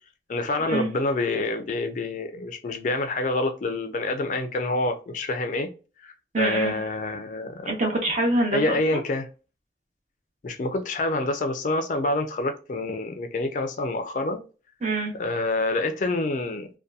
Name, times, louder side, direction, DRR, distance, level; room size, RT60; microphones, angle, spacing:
voice 1, 0.3-5.7 6.0-7.7 8.5-9.3 10.4-14.4 15.2-16.7, left 2 dB, 45° left, 0.4 m, -27 dB
voice 2, 6.3-6.8 7.7-9.0 14.8-15.1, right 2 dB, 40° right, 0.8 m, -25 dB
2.7 x 2.2 x 2.2 m
head